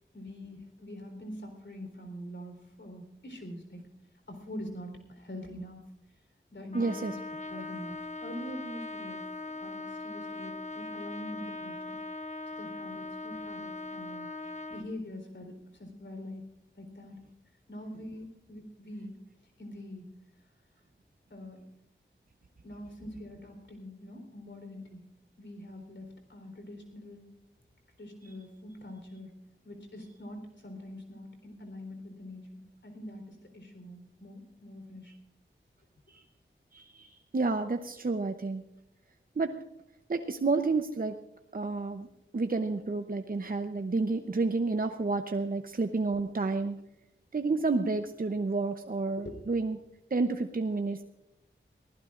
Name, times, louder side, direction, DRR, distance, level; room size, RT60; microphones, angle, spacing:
voice 1, 0.1-3.9 4.3-5.9 6.5-12.0 12.5-14.3 14.7-16.4 16.8-17.1 17.7-19.2 19.4-20.1 21.3-21.6 22.6-25.0 25.4-27.2 28.0-29.4 29.6-35.1 49.2-49.4, left 1 dB, 70° left, 4 dB, 3.9 m, -44 dB
Trumpet, 6.7-14.9, left 2 dB, 35° left, 1.0 m, -40 dB
voice 2, 6.7-7.1 36.1-36.2 36.7-38.6 39.4-39.5 40.1-41.2 41.5-42.1 42.3-46.8 47.3-49.8 50.1-51.0, right 3 dB, 45° right, 7 dB, 0.8 m, -30 dB
23.0 x 15.5 x 2.5 m, 0.86 s
cardioid pair, 40°, 20 cm